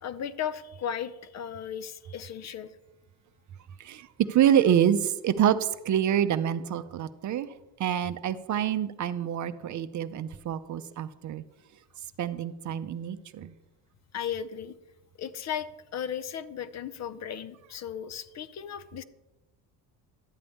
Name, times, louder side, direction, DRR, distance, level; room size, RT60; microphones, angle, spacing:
voice 1, 0.0-2.8 14.1-14.8 15.2-19.0, left 8 dB, 45° left, 14 dB, 0.5 m, -36 dB
voice 2, 3.8-7.5 7.8-11.4 12.2-13.5, right 10 dB, 45° right, 12 dB, 0.6 m, -26 dB
12.0 x 8.3 x 3.5 m, 1.0 s
cardioid pair, 100°, 40 cm